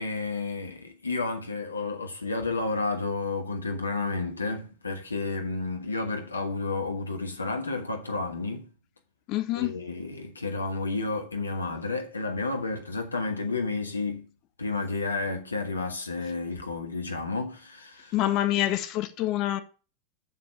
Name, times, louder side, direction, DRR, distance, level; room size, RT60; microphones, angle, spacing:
voice 1, 0.0-8.7 9.5-14.2 14.6-18.1, left 3 dB, 80° left, 1.6 m, -31 dB
voice 2, 9.3-9.7 18.1-19.6, left 14 dB, 40° left, 0.9 m, -26 dB
7.5 x 6.7 x 6.8 m
figure-of-eight pair, 90°, 0 cm